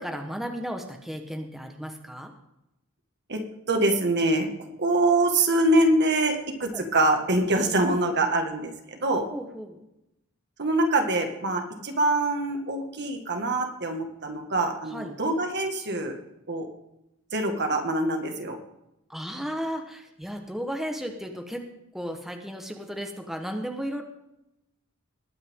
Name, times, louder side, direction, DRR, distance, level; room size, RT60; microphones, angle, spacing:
voice 1, 0.0-2.3 6.7-6.9 9.3-9.8 14.9-15.1 19.1-24.0, equal, ahead, 3 dB, 1.2 m, -34 dB
voice 2, 3.7-4.5 4.8-9.2 10.6-16.2 16.5-16.7 17.3-18.6, right 2 dB, 55° right, 4 dB, 1.9 m, -24 dB
20.5 x 9.2 x 3.7 m, 0.87 s
head